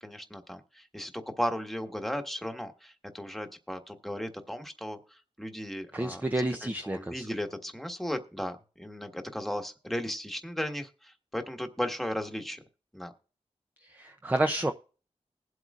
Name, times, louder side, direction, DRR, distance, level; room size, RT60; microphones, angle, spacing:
voice 1, 0.0-6.2 6.6-12.6 12.9-13.1, equal, ahead, 5 dB, 1.4 m, -36 dB
voice 2, 5.9-7.3 13.9-14.7, right 1 dB, 15° right, 6 dB, 0.6 m, -30 dB
20.5 x 7.9 x 2.4 m, 0.37 s
wide cardioid pair, 85°, 12 cm